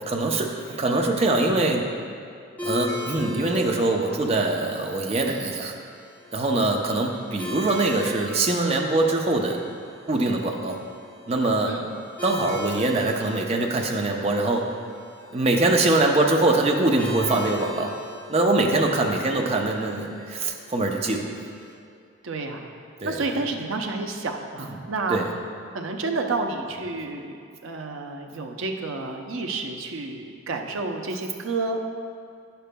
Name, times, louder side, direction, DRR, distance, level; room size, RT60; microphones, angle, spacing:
voice 1, 0.1-1.8 2.6-5.7 6.3-9.6 10.1-10.8 11.3-11.8 12.2-14.7 15.3-17.9 18.3-21.3 23.0-23.2 24.6-24.7 25.1-25.3, right 2 dB, 30° right, 2 dB, 0.5 m, -23 dB
sound 1, 2.6-21.7, left 2 dB, 10° left, 0.7 m, -39 dB
voice 2, 22.2-22.7 23.0-25.2 25.7-27.3 27.6-31.8, right 3 dB, 75° right, 3 dB, 0.6 m, -30 dB
10.0 x 6.8 x 2.2 m, 2.3 s
head